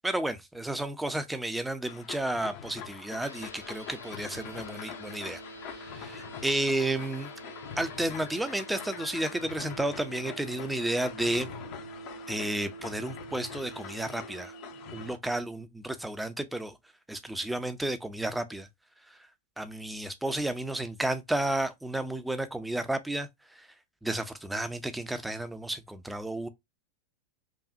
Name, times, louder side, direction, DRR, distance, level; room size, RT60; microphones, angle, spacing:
voice 1, 0.0-7.3 7.8-11.5 12.3-14.5 14.9-16.8 17.1-18.7 19.1-19.2 19.6-23.7 24.0-26.5, right 1 dB, 5° right, 0.6 m, -32 dB
sound 1, 1.9-15.2, left 8 dB, 40° left, 0.7 m, -44 dB
sound 2, 3.2-15.1, right 2 dB, 80° left, 0.6 m, -46 dB
5.1 x 2.3 x 2.7 m
figure-of-eight pair, 90°, 0 cm